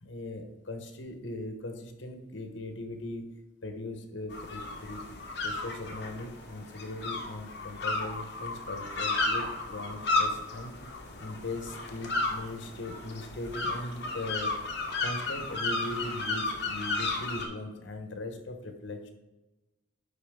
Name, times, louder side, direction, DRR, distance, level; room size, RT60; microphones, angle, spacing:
voice 1, 0.0-3.3 3.6-5.1 5.4-10.7 11.2-14.5 15.0-19.1, left 2 dB, 85° left, 6 dB, 1.0 m, -39 dB
sound 1, 4.3-17.4, left 3 dB, 60° left, 1.1 m, -33 dB
10.0 x 4.1 x 3.6 m, 1.1 s
head